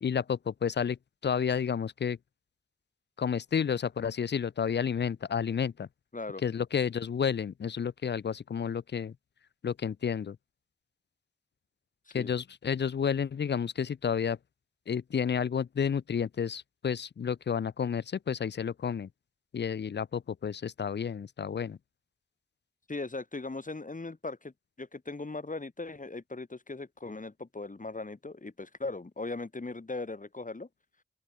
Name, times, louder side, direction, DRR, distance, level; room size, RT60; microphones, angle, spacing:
voice 1, 0.0-1.0 1.2-2.2 3.2-5.9 6.4-9.1 9.6-10.4 12.1-14.4 14.9-19.1 19.5-21.8, left 7 dB, 70° left, 0.6 m, -31 dB
voice 2, 6.1-6.4 12.1-12.3 22.9-24.5 24.8-30.7, left 3 dB, 45° left, 5.7 m, -39 dB
open air
cardioid pair, 50°, 18 cm